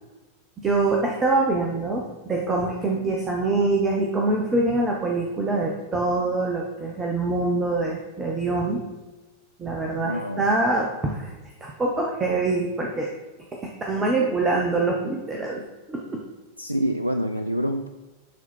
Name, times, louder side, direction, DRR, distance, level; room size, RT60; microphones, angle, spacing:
voice 1, 0.6-8.8 9.6-11.3 11.6-13.1 13.5-15.6 15.9-16.2, right 2 dB, 20° right, 0 dB, 1.1 m, -24 dB
voice 2, 10.0-10.5 16.6-17.9, equal, 90° right, 8 dB, 0.3 m, -26 dB
10.5 x 4.1 x 4.5 m, 1.2 s
figure-of-eight pair, 90°, 0 cm